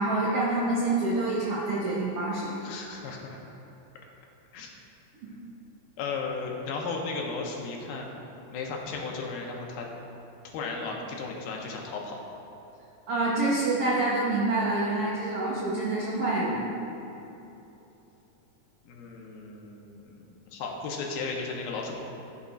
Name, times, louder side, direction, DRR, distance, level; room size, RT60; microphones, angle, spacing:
voice 1, 0.0-2.6 5.2-5.3 13.1-16.7, right 2 dB, 90° right, -6 dB, 1.3 m, -27 dB
voice 2, 2.6-3.4 4.5-4.7 6.0-8.1 8.5-9.9 10.5-12.2 18.9-21.9, left 4 dB, 80° left, 0 dB, 2.8 m, -35 dB
15.5 x 6.9 x 2.5 m, 3.0 s
omnidirectional pair, 4.3 m